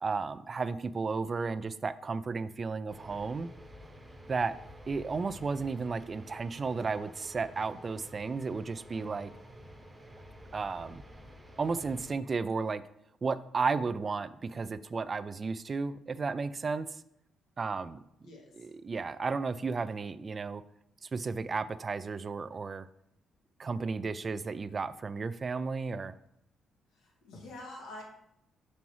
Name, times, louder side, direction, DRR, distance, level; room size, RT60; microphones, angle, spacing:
voice 1, 0.0-3.5 4.3-4.5 4.9-9.3 10.5-11.0 11.6-12.8 13.2-17.0 17.6-18.0 18.6-20.6 21.0-22.9 23.6-26.2, right 4 dB, 35° right, 14 dB, 0.3 m, -33 dB
sound 1, 2.9-12.1, equal, 10° right, 0.9 m, -51 dB
voice 2, 26.9-28.0, left 1 dB, 85° left, -1 dB, 1.6 m, -46 dB
5.9 x 5.4 x 3.1 m, 0.78 s
cardioid pair, 90°, 0 cm